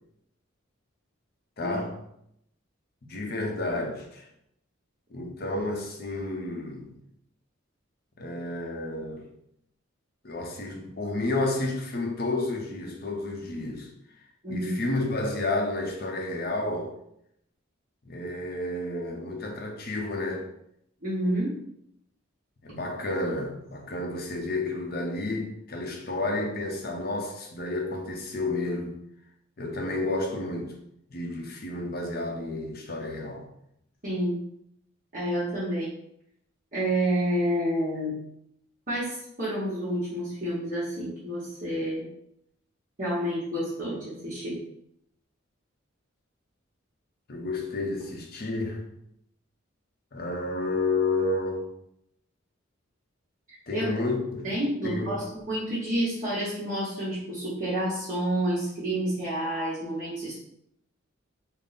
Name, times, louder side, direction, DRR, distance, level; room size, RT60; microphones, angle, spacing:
voice 1, 1.6-2.0 3.1-4.3 5.1-6.9 8.2-9.3 10.2-13.9 14.5-16.9 18.0-20.5 22.6-29.0 29.6-30.7 31.1-33.5 47.3-48.8 50.1-51.7 53.7-54.5 54.8-55.3, left 2 dB, 50° left, 0.6 m, -31 dB
voice 2, 21.0-21.5 34.0-34.3 35.1-35.9 36.7-38.2 38.9-42.0 43.0-44.6 53.7-54.0 54.4-60.3, right 1 dB, 40° right, 1.0 m, -29 dB
3.5 x 2.1 x 4.0 m
head